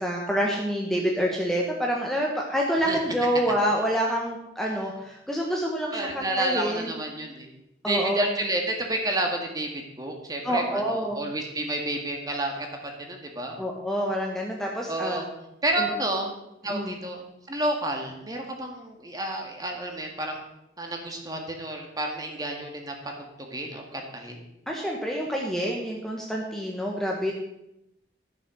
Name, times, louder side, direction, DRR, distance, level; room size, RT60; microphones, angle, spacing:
voice 1, 0.0-7.0 7.8-8.3 10.4-11.2 13.6-15.2 15.8-15.9 16.7-17.0 24.7-27.3, equal, ahead, -1 dB, 1.3 m, -27 dB
voice 2, 5.9-7.5 7.9-12.7 13.0-13.6 14.9-15.3 15.6-16.3 16.6-20.4 20.8-22.9 23.5-24.4, right 1 dB, 20° right, 2 dB, 1.9 m, -30 dB
13.0 x 7.1 x 6.3 m, 0.86 s
head